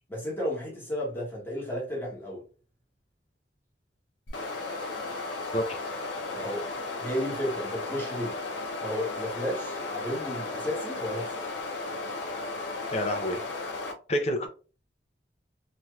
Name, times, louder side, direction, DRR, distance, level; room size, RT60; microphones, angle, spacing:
voice 1, 0.1-2.4 6.3-6.6 7.0-8.4 8.8-11.4, equal, 10° left, 1.1 m, -33 dB
sound 1, 4.3-13.9, left 3 dB, 80° left, 0.7 m, -35 dB
voice 2, 12.9-13.4 14.1-14.5, left 1 dB, 35° left, 0.5 m, -28 dB
3.0 x 2.8 x 2.3 m
head